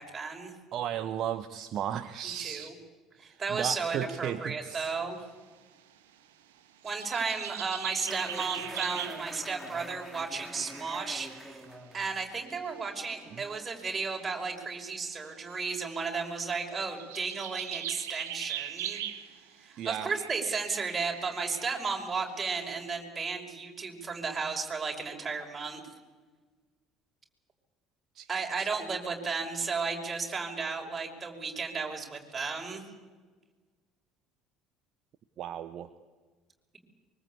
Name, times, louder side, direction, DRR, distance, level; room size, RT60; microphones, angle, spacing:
voice 1, 0.0-0.5 2.4-2.7 3.2-5.2 6.8-11.6 11.9-19.0 19.6-25.8 28.3-32.8, right 4 dB, 25° right, 2 dB, 5.7 m, -34 dB
voice 2, 0.7-2.8 3.2-4.9 13.3-13.4 19.8-20.1 28.1-28.3 28.6-28.7 35.4-35.9, right 10 dB, 50° right, 11 dB, 1.0 m, -35 dB
sound 1, 6.9-9.4 10.3-11.9 12.4-12.6 13.3-13.4 15.0-15.5 16.9-19.5 19.9-22.3, right 11 dB, 70° right, 1.6 m, -40 dB
sound 2, 8.1-13.7, right 1 dB, ahead, 3.0 m, -45 dB
24.5 x 23.5 x 8.6 m, 1.4 s
figure-of-eight pair, 60°, 0 cm